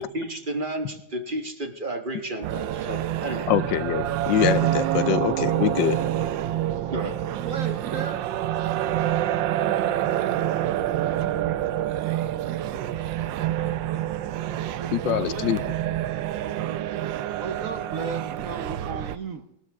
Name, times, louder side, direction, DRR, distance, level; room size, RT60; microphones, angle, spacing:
voice 1, 0.0-3.5 6.9-7.3, right 1 dB, 30° right, 5 dB, 1.3 m, -32 dB
sound 1, 2.4-19.2, right 12 dB, 80° right, 1.4 m, -27 dB
voice 2, 3.5-6.0 14.9-15.6, left 11 dB, 80° left, 15 dB, 1.4 m, -24 dB
voice 3, 7.3-8.3 14.6-15.5 17.4-19.4, right 5 dB, 55° right, 8 dB, 1.1 m, -35 dB
20.0 x 12.5 x 3.6 m, 0.79 s
omnidirectional pair, 2.0 m